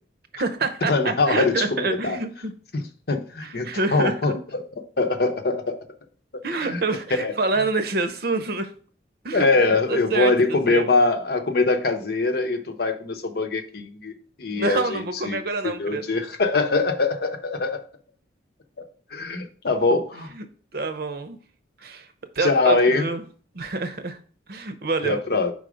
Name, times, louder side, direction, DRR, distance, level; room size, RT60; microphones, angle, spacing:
voice 1, 0.3-2.5 3.4-4.4 6.4-8.7 9.2-9.5 9.9-10.3 10.7-10.8 14.6-16.1 20.4-20.5 20.7-21.4 21.8-22.1 22.4-23.2 23.5-24.2 24.5-25.2, right 3 dB, 60° right, 8 dB, 0.7 m, -27 dB
voice 2, 0.9-2.2 2.7-4.7 5.0-5.8 6.6-6.8 7.1-7.3 9.3-14.1 14.4-15.4 15.6-17.8 19.1-20.3 22.4-23.1 25.0-25.5, left 3 dB, 60° left, 6 dB, 0.8 m, -23 dB
5.0 x 4.0 x 5.0 m, 0.43 s
head